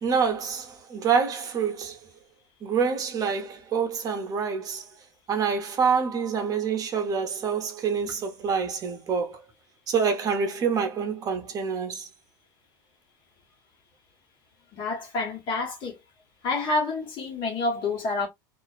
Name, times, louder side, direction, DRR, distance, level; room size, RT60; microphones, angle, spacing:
voice 1, 0.0-2.0 2.6-4.9 5.3-9.4 9.9-12.1, right 6 dB, 35° right, 0.7 m, -26 dB
voice 2, 14.7-16.0 16.4-18.3, left 3 dB, 45° left, 1.2 m, -28 dB
2.4 x 2.1 x 2.4 m
hypercardioid pair, 90°, 11 cm